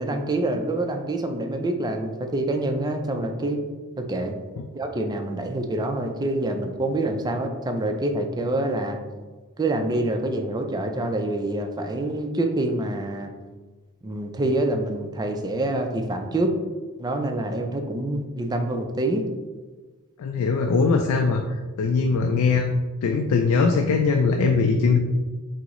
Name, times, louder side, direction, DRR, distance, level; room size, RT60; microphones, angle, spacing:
voice 1, 0.0-3.6 4.0-4.4 4.7-9.0 9.6-13.3 14.0-16.5 17.0-19.3, right 1 dB, 20° right, 5 dB, 0.3 m, -26 dB
voice 2, 20.2-22.7 23.0-25.0, left 4 dB, 80° left, 3 dB, 0.3 m, -21 dB
6.0 x 2.0 x 3.0 m, 1.3 s
head